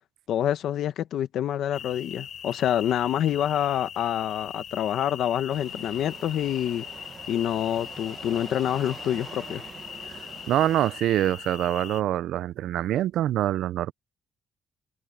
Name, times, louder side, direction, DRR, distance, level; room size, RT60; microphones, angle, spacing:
voice 1, 0.3-6.8 7.3-9.6, left 10 dB, 70° left, 0.8 m, -27 dB
sound 1, 1.7-12.0, left 8 dB, 55° left, 3.3 m, -41 dB
sound 2, 5.5-10.9, right 6 dB, 40° right, 1.0 m, -45 dB
voice 2, 10.2-13.9, right 12 dB, 80° right, 0.4 m, -25 dB
cardioid pair, 155°, 0 cm